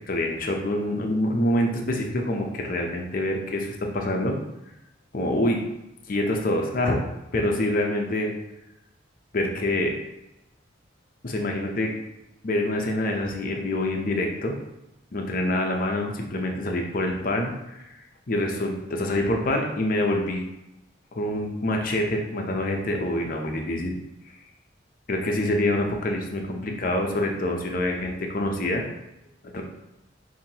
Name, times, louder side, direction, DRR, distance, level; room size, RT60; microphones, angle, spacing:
voice 1, 0.1-4.4 5.1-5.6 6.1-7.0 7.3-8.3 9.3-10.0 11.2-11.9 12.4-14.6 15.1-17.8 18.3-20.4 21.1-23.9 25.1-28.8 29.4-29.6, left 1 dB, 50° left, 2 dB, 0.6 m, -26 dB
5.6 x 2.7 x 2.8 m, 0.90 s
head